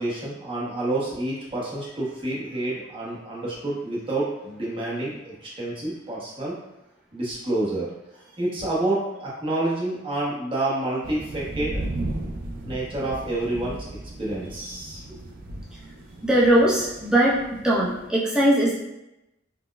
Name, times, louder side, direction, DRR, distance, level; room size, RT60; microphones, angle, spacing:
voice 1, 0.0-6.5 7.1-7.9 8.2-11.9 12.6-15.0, right 2 dB, 30° right, -7 dB, 0.9 m, -28 dB
sound 1, 11.0-18.1, right 1 dB, 50° right, 0.4 m, -36 dB
voice 2, 16.2-17.4 17.6-18.7, right 1 dB, 5° right, -7 dB, 0.6 m, -20 dB
4.1 x 2.1 x 2.2 m, 0.93 s
head